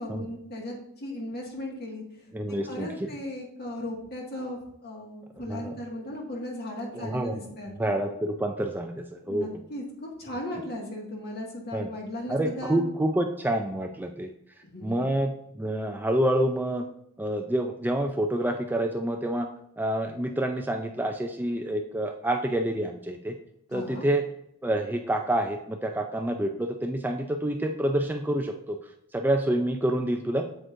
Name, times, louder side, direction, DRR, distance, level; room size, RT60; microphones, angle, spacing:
voice 1, 0.0-2.0 2.7-7.9 9.2-12.8 14.6-15.1 23.7-24.1, left 1 dB, 50° left, -1 dB, 1.9 m, -37 dB
voice 2, 2.3-3.1 5.5-5.7 6.9-7.4 7.8-9.5 11.7-11.9 12.3-14.3 14.8-16.8 17.2-19.5 19.8-23.3 23.7-24.3 24.6-28.8 29.1-30.5, right 1 dB, 10° right, 4 dB, 0.4 m, -27 dB
7.9 x 7.7 x 2.6 m, 0.76 s
head